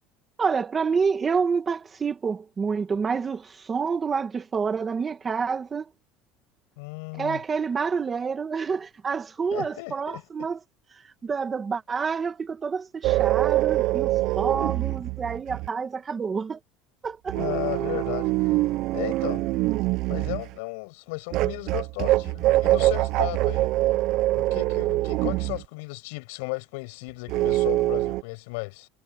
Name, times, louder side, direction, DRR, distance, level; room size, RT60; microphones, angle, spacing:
voice 1, 0.4-5.9 7.2-10.6 11.2-16.6 17.0-17.4, right 5 dB, 20° right, 2.0 m, -28 dB
voice 2, 6.8-7.4 9.5-10.2 17.3-18.7 18.9-19.4 20.1-23.7 24.3-28.9, left 29 dB, 75° left, 7.9 m, -35 dB
sound 1, 13.0-15.7 17.3-20.5 21.3-25.6 27.3-28.2, right 17 dB, 50° right, 0.5 m, -24 dB
cardioid pair, 165°, 0 cm